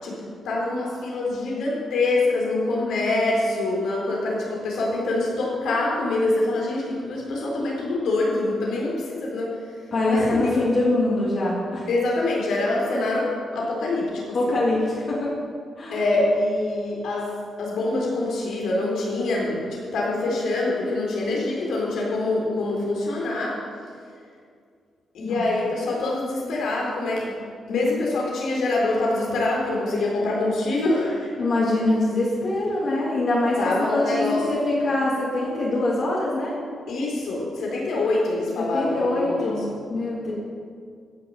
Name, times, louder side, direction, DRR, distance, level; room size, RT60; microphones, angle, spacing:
voice 1, 0.0-9.5 10.1-10.5 11.9-14.6 15.9-17.3 17.6-23.6 25.1-27.3 27.7-31.3 33.6-34.4 36.9-39.8, left 2 dB, 80° left, -3 dB, 4.1 m, -25 dB
voice 2, 9.9-11.9 14.3-15.3 15.8-16.0 25.2-25.4 31.4-36.5 38.6-40.3, left 2 dB, 45° left, -7 dB, 3.2 m, -24 dB
15.5 x 7.1 x 7.7 m, 2.2 s
wide cardioid pair, 170°, 0 cm